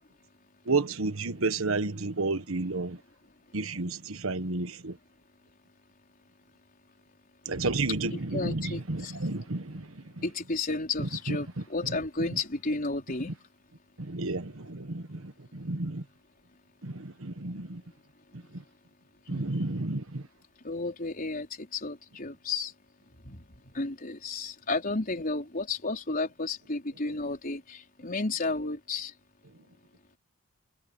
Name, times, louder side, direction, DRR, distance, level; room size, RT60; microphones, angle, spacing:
voice 1, 0.7-3.0 3.5-5.0 7.4-10.0 11.0-11.4 14.0-16.0 16.8-17.8 18.5-18.6 19.3-20.2, right 3 dB, 75° right, 1.4 m, -31 dB
voice 2, 8.1-9.2 10.2-13.3 19.3-19.5 20.6-22.7 23.2-29.1, left 3 dB, 45° left, 4.5 m, -33 dB
head